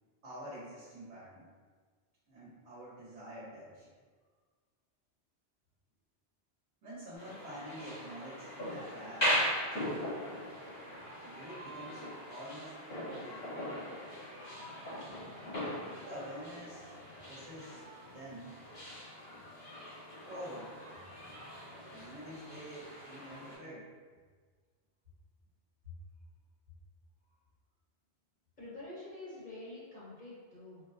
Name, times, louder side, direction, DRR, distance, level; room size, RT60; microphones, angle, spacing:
voice 1, 0.2-1.5 2.3-3.9 6.8-9.3 11.2-13.5 15.9-17.0 17.3-18.6 20.3-20.7 21.9-23.9 25.8-25.9, equal, 80° right, -9 dB, 1.2 m, -47 dB
sound 1, 7.1-23.6, equal, 80° left, 1.8 m, -40 dB
voice 2, 28.6-30.8, left 2 dB, 45° left, -9 dB, 0.9 m, -47 dB
4.1 x 2.0 x 2.6 m, 1.5 s
omnidirectional pair, 1.1 m